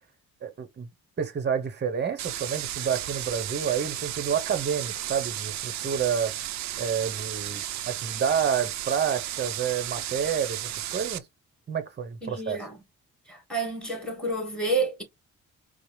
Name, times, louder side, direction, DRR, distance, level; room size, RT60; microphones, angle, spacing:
voice 1, 0.4-0.9 1.2-6.3 6.8-11.2 11.7-12.6, right 7 dB, 35° right, 0.9 m, -29 dB
sound 1, 2.2-11.2, right 12 dB, 65° right, 0.5 m, -34 dB
voice 2, 12.2-12.8 13.3-15.0, right 2 dB, 5° left, 2.2 m, -29 dB
4.7 x 2.1 x 3.1 m
cardioid pair, 90°, 30 cm